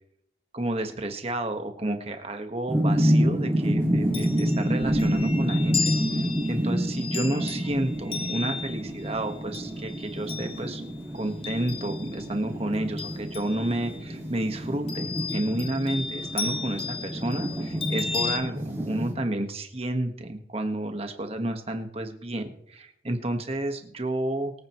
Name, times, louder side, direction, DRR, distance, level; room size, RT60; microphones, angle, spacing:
voice 1, 0.5-6.0 6.4-10.8 11.1-24.5, right 1 dB, 35° right, 5 dB, 1.5 m, -31 dB
sound 1, 2.7-19.1, equal, 15° right, 2.8 m, -28 dB
Chime, 3.9-12.4 12.7-14.1 14.9-18.4, left 5 dB, 30° left, 1.2 m, -35 dB
23.5 x 9.1 x 3.1 m, 0.74 s
head